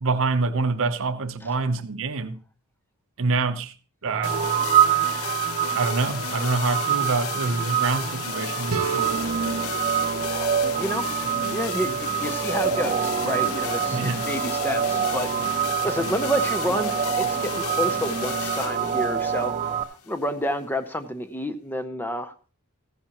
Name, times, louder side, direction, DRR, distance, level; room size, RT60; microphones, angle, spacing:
voice 1, 0.0-2.4 3.2-3.7 4.0-4.6 5.7-9.2 13.9-14.2, right 3 dB, 65° right, 0.8 m, -26 dB
sound 1, 4.1-19.8, right 8 dB, 30° right, 0.6 m, -26 dB
sound 2, 4.2-20.3, left 7 dB, 70° left, 0.9 m, -34 dB
sound 3, 8.7-11.6, right 6 dB, 90° right, 1.0 m, -34 dB
voice 2, 10.3-11.1 11.5-22.3, equal, 10° left, 0.7 m, -30 dB
15.0 x 10.5 x 3.0 m
head